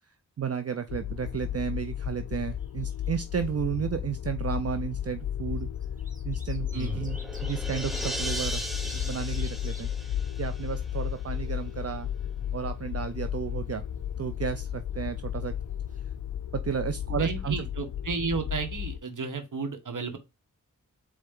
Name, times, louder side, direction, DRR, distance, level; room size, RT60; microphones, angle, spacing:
voice 1, 0.4-5.7 6.2-8.6 8.9-9.9 10.4-12.1 12.5-13.8 14.2-15.5 16.5-17.7, right 7 dB, 45° right, 0.5 m, -32 dB
sound 1, 0.9-19.0, left 10 dB, 80° left, 0.5 m, -34 dB
sound 2, 2.4-3.1 3.4-3.5 4.6-4.7 5.6-9.8 10.3-10.4 10.7-11.7 15.6-15.7 15.9-16.0, right 2 dB, 25° right, 1.4 m, -48 dB
sound 3, 6.6-11.2, right 1 dB, ahead, 0.9 m, -38 dB
voice 2, 6.7-7.1 17.2-20.2, right 4 dB, 65° right, 1.4 m, -33 dB
4.4 x 3.2 x 3.7 m
cardioid pair, 40°, 34 cm